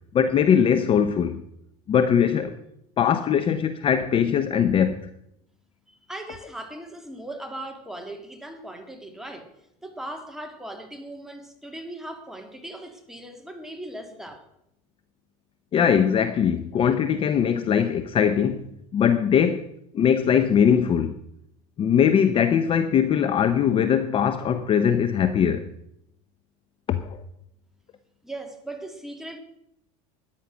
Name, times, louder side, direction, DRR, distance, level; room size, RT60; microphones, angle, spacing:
voice 1, 0.1-1.4 1.9-2.6 3.0-5.1 15.7-18.6 18.9-19.6 19.9-21.1 21.8-25.7 26.9-27.2, left 8 dB, 30° left, 0.7 m, -21 dB
voice 2, 5.9-9.5 9.8-14.4 28.2-29.4, right 1 dB, ahead, 2.1 m, -38 dB
13.0 x 9.9 x 6.1 m
supercardioid pair, 130°, 18 cm